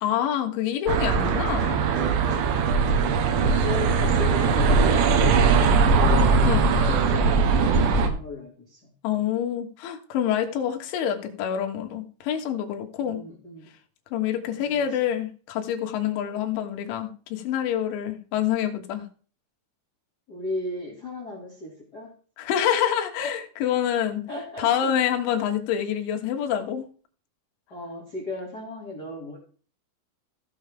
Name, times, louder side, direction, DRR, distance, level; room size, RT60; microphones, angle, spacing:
voice 1, 0.0-1.8 6.4-6.6 9.0-13.2 14.1-19.0 22.4-24.2 24.6-26.9, left 9 dB, 75° left, 4 dB, 3.6 m, -26 dB
sound 1, 0.9-8.1, right 4 dB, 75° right, 3.4 m, -20 dB
voice 2, 3.4-8.8 13.0-13.7 20.3-22.1 24.3-24.9 27.7-29.4, left 2 dB, 35° left, -2 dB, 1.7 m, -36 dB
15.5 x 6.7 x 3.6 m, 0.40 s
omnidirectional pair, 5.6 m